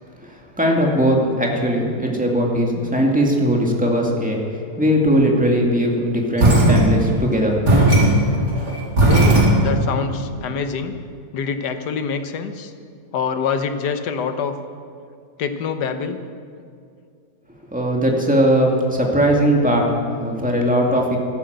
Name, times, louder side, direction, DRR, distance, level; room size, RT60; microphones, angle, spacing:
voice 1, 0.6-4.4 4.8-7.6 17.7-21.2, equal, 5° right, -1 dB, 2.2 m, -19 dB
sound 1, 6.4-7.3 7.7-10.0, right 1 dB, 80° right, 4.6 m, -15 dB
voice 2, 9.1-11.0 11.3-12.7 13.1-14.6 15.4-16.2, left 6 dB, 85° left, 9 dB, 1.6 m, -25 dB
14.0 x 12.0 x 8.0 m, 2.3 s
omnidirectional pair, 1.8 m